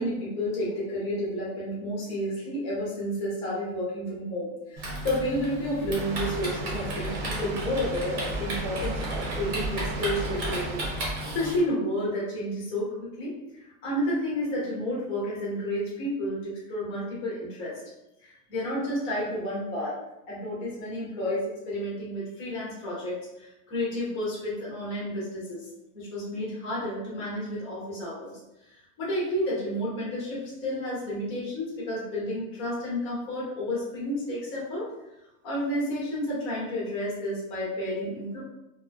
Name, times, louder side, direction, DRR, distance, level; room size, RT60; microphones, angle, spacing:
voice 1, 0.0-13.3 13.6-17.8 18.2-20.0 20.3-25.6 25.9-28.3 29.0-34.9 35.4-38.4, equal, 15° left, -7 dB, 0.4 m, -31 dB
Typing, 4.8-11.6, right 1 dB, 30° right, 0.7 m, -33 dB
Water, 5.9-11.0, right 2 dB, 85° right, 0.7 m, -37 dB
2.3 x 2.2 x 2.4 m, 0.92 s
supercardioid pair, 160°, 42 cm